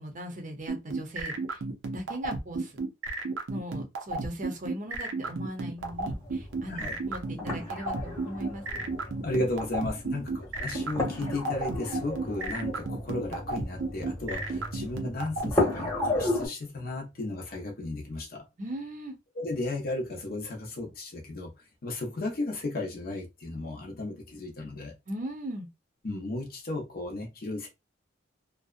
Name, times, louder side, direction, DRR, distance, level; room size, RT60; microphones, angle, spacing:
voice 1, 0.0-1.6 1.9-2.8 3.5-8.6 10.1-10.4 18.6-19.1 25.1-25.7, right 1 dB, 40° right, 0.6 m, -39 dB
sound 1, 0.7-15.5, right 3 dB, 85° right, 0.6 m, -32 dB
sound 2, 5.8-16.5, left 2 dB, 15° left, 0.9 m, -34 dB
voice 2, 9.2-18.5 19.3-21.5 21.8-24.9 26.0-27.7, left 2 dB, 50° left, 0.6 m, -34 dB
2.6 x 2.1 x 2.3 m
head